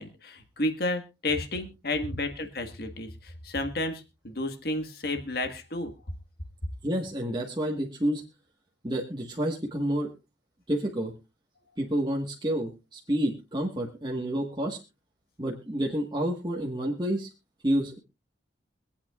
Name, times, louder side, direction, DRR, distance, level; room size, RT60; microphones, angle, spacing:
voice 1, 0.0-5.9, left 2 dB, 55° left, 6 dB, 1.6 m, -32 dB
voice 2, 6.8-8.2 8.8-10.1 10.7-11.1 11.8-14.8 15.4-17.3 17.6-18.0, right 1 dB, 25° right, -2 dB, 1.4 m, -29 dB
24.5 x 8.7 x 2.4 m, 0.27 s
head